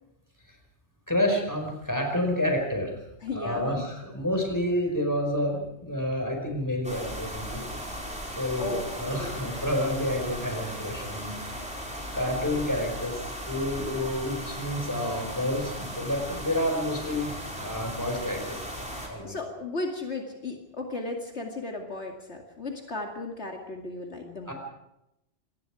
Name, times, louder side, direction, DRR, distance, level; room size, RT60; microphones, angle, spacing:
voice 1, 1.1-3.0 3.3-7.6 8.4-11.6 12.1-19.4 24.5-24.6, left 1 dB, 15° left, 2 dB, 5.1 m, -29 dB
voice 2, 3.2-3.8 8.6-9.4 19.2-24.5, left 2 dB, 65° left, 2 dB, 2.6 m, -35 dB
sound 1, 6.8-19.1, equal, 5° right, 5.0 m, -37 dB
26.5 x 20.5 x 4.9 m, 0.85 s
omnidirectional pair, 1.2 m